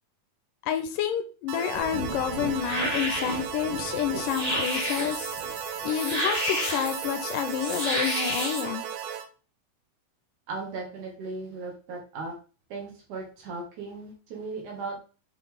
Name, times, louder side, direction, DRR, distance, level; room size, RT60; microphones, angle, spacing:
voice 1, 0.6-5.4 5.8-8.9, left 9 dB, 80° left, 9 dB, 2.2 m, -29 dB
sound 1, 1.5-9.3, right 8 dB, 90° right, 1.5 m, -35 dB
sound 2, 1.7-8.6, equal, 15° right, 1.2 m, -32 dB
voice 2, 10.5-12.3 12.7-15.0, right 3 dB, 65° right, 0 dB, 3.1 m, -37 dB
6.5 x 5.9 x 3.5 m, 0.36 s
omnidirectional pair, 4.0 m